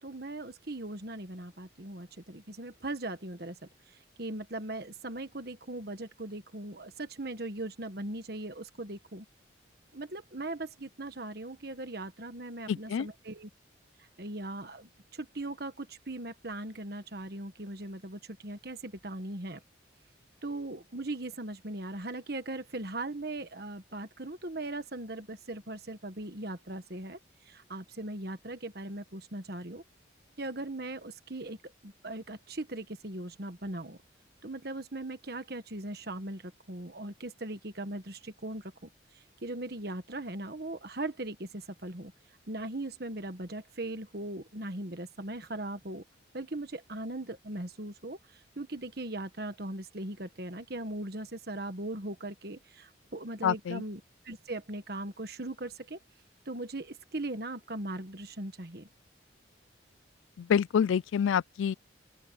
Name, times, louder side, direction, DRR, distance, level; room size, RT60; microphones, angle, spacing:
voice 1, 0.0-3.6 3.8-9.3 9.9-13.5 14.0-19.6 20.4-29.8 30.4-31.6 31.8-34.0 34.4-46.0 46.3-56.0 56.4-58.9, right 2 dB, 50° right, 1.4 m, -39 dB
voice 2, 12.7-13.1 53.4-53.8 60.4-61.7, left 8 dB, 85° left, 0.3 m, -27 dB
open air
head